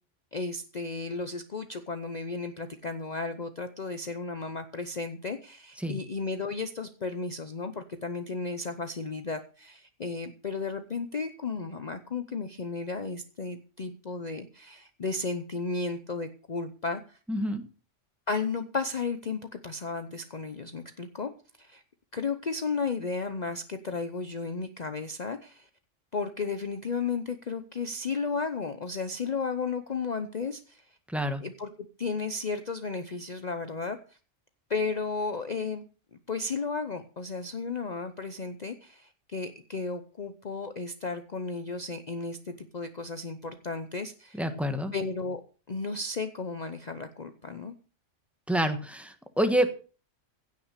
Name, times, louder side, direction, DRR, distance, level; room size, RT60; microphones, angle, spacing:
voice 1, 0.3-17.2 18.3-21.3 21.6-21.8 22.1-25.7 26.1-30.8 31.4-31.7 32.0-34.0 34.7-35.8 36.3-44.5 44.9-45.4 45.7-47.7, left 4 dB, 40° left, 8 dB, 0.8 m, -34 dB
voice 2, 17.3-17.6 31.1-31.4 44.4-44.9 48.5-49.8, equal, ahead, 7 dB, 1.4 m, -27 dB
16.0 x 6.1 x 6.7 m, 0.38 s
omnidirectional pair, 1.3 m